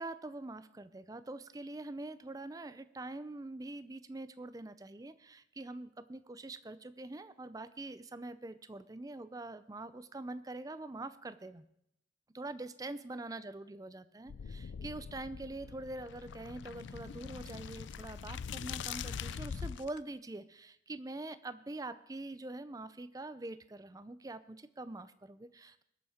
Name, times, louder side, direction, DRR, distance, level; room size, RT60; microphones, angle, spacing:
voice 1, 0.0-11.7 12.3-25.8, right 2 dB, 20° right, 13 dB, 0.5 m, -44 dB
sound 1, 14.3-20.0, left 6 dB, 90° left, 0.4 m, -43 dB
21.0 x 7.1 x 4.9 m, 0.76 s
head